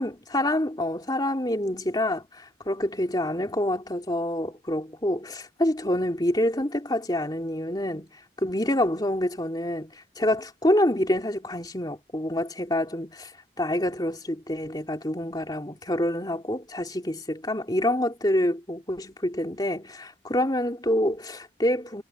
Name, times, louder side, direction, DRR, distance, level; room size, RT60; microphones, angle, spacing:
voice 1, 0.0-8.1 8.4-13.3 13.6-22.0, left 1 dB, 20° left, 3.2 m, -27 dB
head